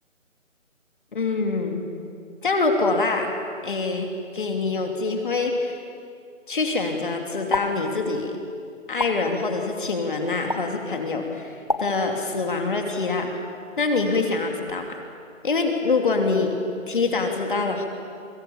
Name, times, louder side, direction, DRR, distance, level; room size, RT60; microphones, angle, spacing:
voice 1, 1.1-1.8 2.4-3.3 3.6-5.7 6.5-8.4 8.9-13.3 13.8-15.0 15.4-16.5 16.9-17.9, left 3 dB, 40° left, 3 dB, 3.0 m, -25 dB
sound 1, 7.5-7.7 9.0-9.1 10.5-10.6 11.7-11.8, left 2 dB, 25° left, 0.8 m, -24 dB
29.0 x 23.5 x 7.0 m, 2.4 s
figure-of-eight pair, 170°, 39 cm